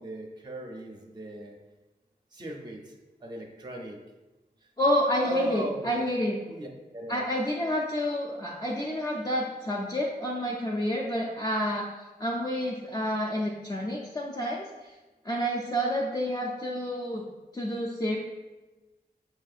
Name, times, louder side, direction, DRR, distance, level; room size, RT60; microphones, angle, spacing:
voice 1, 0.0-1.5 2.3-2.9 3.2-4.0 5.2-6.0 6.5-7.2, right 2 dB, 25° right, 1 dB, 0.5 m, -38 dB
voice 2, 4.8-6.4 7.1-11.9 12.2-14.9 15.2-17.2 17.5-18.2, equal, 20° left, -3 dB, 0.4 m, -29 dB
6.2 x 2.6 x 2.4 m, 1.1 s
wide cardioid pair, 95°, 17 cm